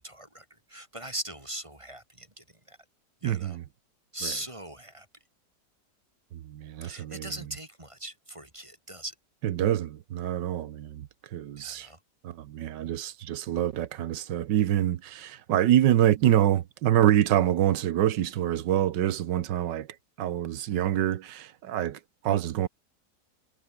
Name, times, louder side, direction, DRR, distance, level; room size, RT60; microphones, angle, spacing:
voice 1, 0.0-2.8 3.2-3.6 4.1-5.1 6.8-9.1 11.6-12.0, right 1 dB, 15° right, 3.0 m, -40 dB
voice 2, 3.2-3.6 4.2-4.3 6.3-7.3 9.4-11.9 12.2-19.9 20.2-22.7, right 11 dB, 80° right, 1.6 m, -26 dB
omnidirectional pair, 1.9 m